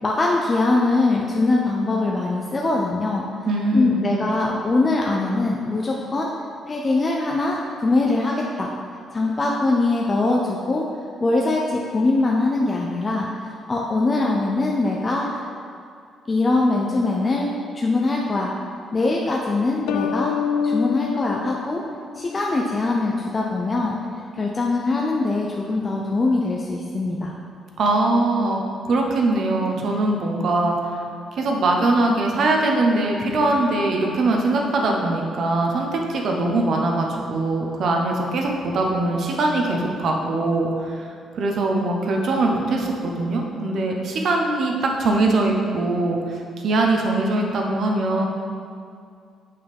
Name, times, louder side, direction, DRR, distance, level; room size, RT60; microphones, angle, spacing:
voice 1, 0.0-3.3 3.7-6.3 6.7-8.7 9.1-10.8 11.2-13.3 13.7-15.3 16.3-17.5 17.7-18.5 18.9-20.3 20.6-21.8 22.1-23.9 24.4-27.3, left 2 dB, 30° left, -2 dB, 0.6 m, -22 dB
voice 2, 3.5-4.0 27.8-28.6 28.8-31.0 31.3-41.1 41.3-48.2, right 2 dB, 65° right, 1 dB, 0.9 m, -22 dB
sound 1, 19.9-22.5, left 7 dB, 85° left, 0.3 m, -27 dB
6.7 x 5.5 x 3.5 m, 2.4 s
cardioid pair, 90°, 0 cm